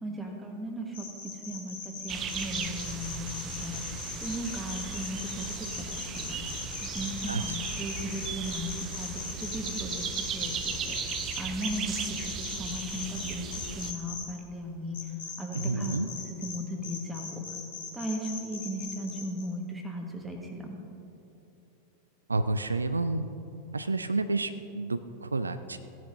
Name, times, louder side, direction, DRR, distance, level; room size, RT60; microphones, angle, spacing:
voice 1, 0.0-3.7 4.2-6.4 6.8-9.1 9.4-10.1 10.3-10.8 11.4-13.5 13.7-15.0 15.4-17.4 17.9-20.8, equal, 10° right, 1 dB, 1.6 m, -37 dB
sound 1, 0.9-14.2 14.9-16.6 16.8-19.4, left 5 dB, 60° left, 2.7 m, -39 dB
sound 2, 2.1-13.9, right 7 dB, 30° right, 0.6 m, -37 dB
voice 2, 7.3-7.6 15.5-16.1 22.3-23.3 23.7-25.8, right 3 dB, 80° right, 11 dB, 0.3 m, -30 dB
16.5 x 10.5 x 2.8 m, 2.9 s
figure-of-eight pair, 90°, 0 cm